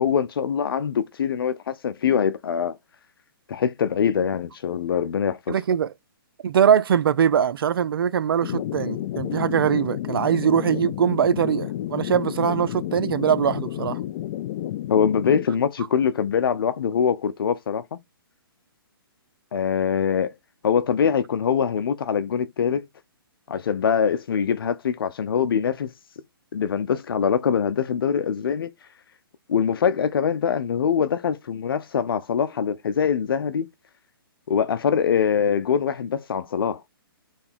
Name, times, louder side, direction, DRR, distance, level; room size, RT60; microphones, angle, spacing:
voice 1, 0.0-2.8 3.5-5.5 14.9-18.0 19.5-20.3 20.6-22.9 23.5-25.9 26.5-28.7 29.5-33.7 34.5-36.8, left 7 dB, 70° left, 0.6 m, -23 dB
voice 2, 5.5-5.9 6.4-14.0, right 8 dB, 70° right, 0.6 m, -22 dB
sound 1, 8.4-15.5, left 13 dB, 35° left, 0.3 m, -31 dB
3.4 x 3.2 x 4.3 m
hypercardioid pair, 145°, 12 cm